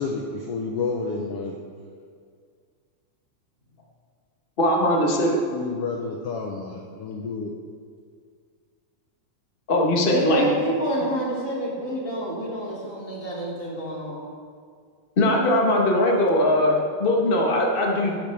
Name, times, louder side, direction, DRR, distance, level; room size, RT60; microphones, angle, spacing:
voice 1, 0.0-1.6 5.5-7.5, left 4 dB, 65° left, 0 dB, 1.7 m, -30 dB
voice 2, 4.6-5.4 9.7-10.5 15.2-18.2, left 1 dB, 85° left, -1 dB, 0.4 m, -20 dB
voice 3, 10.1-14.2, right 1 dB, 25° left, -5 dB, 3.0 m, -28 dB
19.0 x 10.5 x 3.5 m, 2.1 s
omnidirectional pair, 3.4 m